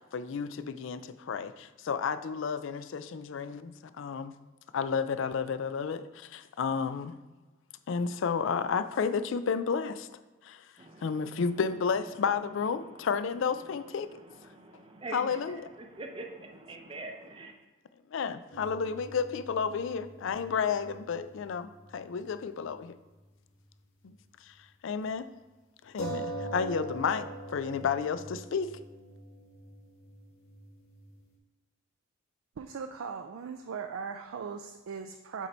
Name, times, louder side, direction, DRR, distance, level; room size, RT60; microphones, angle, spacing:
voice 1, 0.1-1.0 1.3-1.5 1.8-4.3 4.7-6.0 6.3-7.1 7.9-10.1 11.0-14.1 15.1-15.6 18.1-22.9 24.8-25.2 25.9-28.7, left 6 dB, 65° left, 12 dB, 0.4 m, -31 dB
voice 2, 10.8-17.5, right 2 dB, 25° right, 3 dB, 0.6 m, -46 dB
sound 1, 18.5-22.4 22.6-22.8 26.0-31.2, right 1 dB, 90° left, 1.6 m, -43 dB
voice 3, 32.6-35.5, right 6 dB, 75° right, 6 dB, 0.4 m, -39 dB
7.3 x 4.0 x 4.3 m, 1.2 s
head